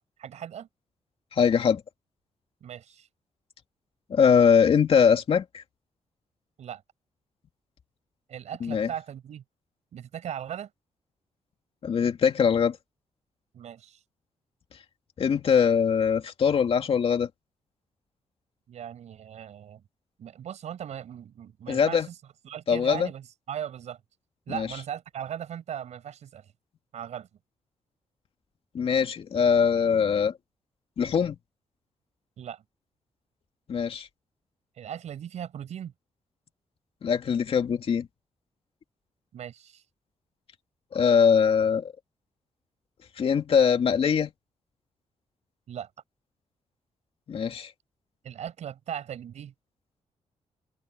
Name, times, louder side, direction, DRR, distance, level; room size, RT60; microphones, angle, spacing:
voice 1, 0.2-0.7 2.6-3.1 6.6-6.8 8.3-9.4 9.9-10.7 13.5-14.0 18.7-19.8 20.2-22.2 22.4-24.0 24.5-26.5 26.9-27.3 32.4-32.6 34.8-35.9 39.3-39.8 45.7-45.9 48.2-49.5, right 9 dB, 75° right, 5.0 m, -38 dB
voice 2, 1.3-1.8 4.1-5.6 8.6-8.9 11.8-12.8 15.2-17.3 21.7-22.1 22.7-23.1 24.5-24.7 28.7-30.3 31.0-31.4 33.7-34.1 37.0-38.1 40.9-41.9 43.2-44.3 47.3-47.7, left 7 dB, 55° left, 2.4 m, -22 dB
open air
cardioid pair, 130°, 12 cm